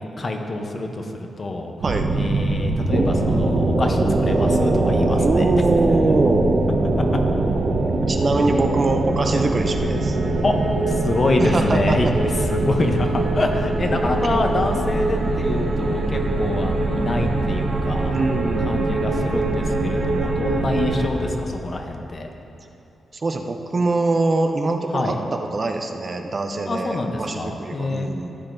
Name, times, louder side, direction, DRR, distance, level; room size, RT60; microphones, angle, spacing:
voice 1, 0.0-1.7 2.1-5.5 10.4-10.5 10.9-12.1 12.5-18.1 18.7-22.3 24.9-25.2 26.7-28.1, left 2 dB, 30° left, 3 dB, 0.7 m, -26 dB
sound 1, 1.8-21.1, right 2 dB, 50° right, 0.9 m, -22 dB
voice 2, 5.2-6.4 7.8-10.2 11.4-12.1 14.2-14.3 18.1-18.9 23.1-28.4, right 3 dB, 30° right, 4 dB, 0.5 m, -23 dB
14.5 x 9.4 x 2.6 m, 2.8 s
wide cardioid pair, 170°, 0 cm